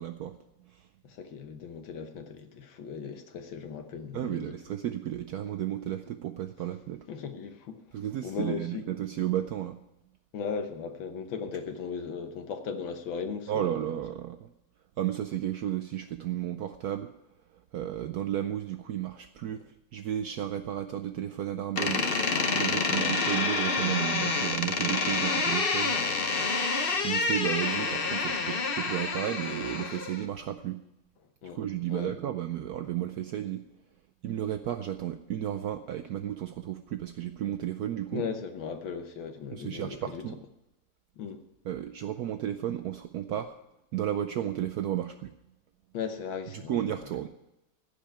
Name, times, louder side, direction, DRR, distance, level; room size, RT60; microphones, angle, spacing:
voice 1, 0.0-0.9 4.1-7.1 7.9-9.8 13.5-14.5 15.0-17.1 17.7-22.1 22.5-26.2 26.8-30.8 31.5-33.6 34.2-38.2 39.5-40.4 41.6-43.6 43.9-45.3 46.5-47.3, right 11 dB, 90° right, 8 dB, 0.8 m, -33 dB
voice 2, 1.0-4.6 7.1-7.8 8.2-8.9 10.3-13.8 22.9-23.1 31.4-31.6 31.9-32.2 38.1-40.2 41.2-41.4 45.9-46.8, left 6 dB, 70° left, 7 dB, 1.7 m, -37 dB
Door, 21.8-30.3, left 4 dB, 45° left, 0.7 m, -28 dB
16.0 x 5.3 x 8.8 m, 0.89 s
omnidirectional pair, 2.3 m